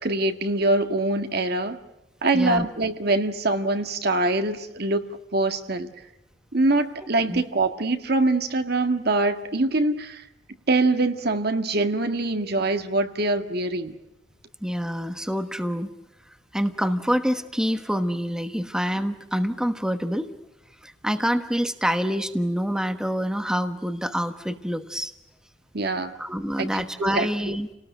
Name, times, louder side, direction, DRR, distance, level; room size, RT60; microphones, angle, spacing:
voice 1, 0.0-1.8 2.2-5.0 5.3-5.9 6.5-10.2 10.7-14.0 25.7-26.1 26.6-27.6, right 2 dB, 55° right, 7 dB, 1.7 m, -24 dB
voice 2, 2.3-2.7 7.3-7.4 14.6-15.9 16.5-20.3 20.8-25.1 26.2-27.7, equal, 5° right, 7 dB, 1.2 m, -26 dB
30.0 x 19.0 x 9.2 m, 0.95 s
head